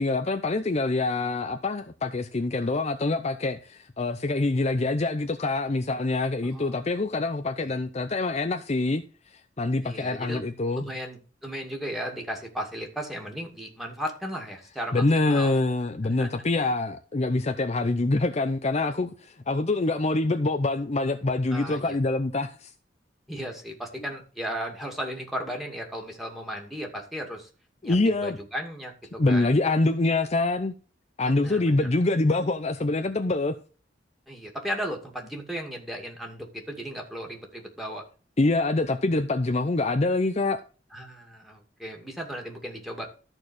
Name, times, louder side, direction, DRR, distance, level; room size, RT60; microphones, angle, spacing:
voice 1, 0.0-9.0 9.6-10.9 14.9-22.7 27.8-28.4 29.2-30.7 31.2-33.6 38.4-40.6, left 2 dB, 35° left, 0.6 m, -25 dB
voice 2, 6.4-6.8 7.6-7.8 9.8-10.4 10.8-15.5 16.1-16.3 21.5-22.0 23.3-27.5 27.8-29.6 31.2-31.9 34.3-38.0 40.9-43.1, equal, ahead, 2.4 m, -36 dB
13.5 x 4.6 x 6.4 m
head